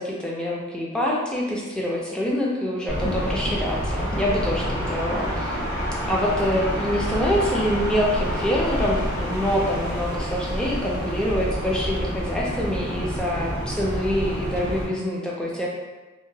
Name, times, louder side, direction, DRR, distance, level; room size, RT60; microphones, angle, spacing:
voice 1, 0.0-5.6 6.1-15.7, equal, 5° left, -4 dB, 0.3 m, -25 dB
sound 1, 2.9-14.8, equal, 65° left, 1.2 m, -28 dB
2.8 x 2.0 x 2.6 m, 1.2 s
head